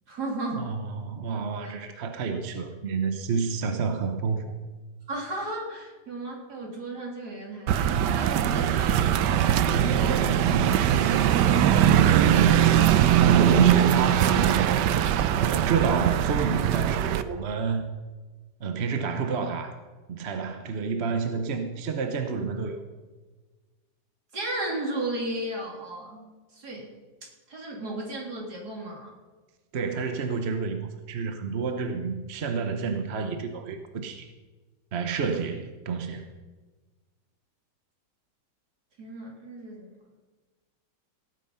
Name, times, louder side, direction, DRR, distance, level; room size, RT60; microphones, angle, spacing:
voice 1, 0.1-0.7 1.6-1.7 5.1-9.1 24.3-26.3 26.5-26.9 27.2-29.1 39.0-39.9, right 1 dB, 65° right, -2 dB, 3.8 m, -34 dB
voice 2, 0.6-4.5 9.7-11.2 11.8-12.7 13.2-14.8 15.3-17.9 18.6-19.7 20.1-22.8 29.7-34.3 34.9-36.3, right 5 dB, 45° right, 7 dB, 1.0 m, -29 dB
sound 1, 7.7-17.2, right 10 dB, 80° right, 1.3 m, -21 dB
18.0 x 9.1 x 5.6 m, 1.3 s
omnidirectional pair, 1.9 m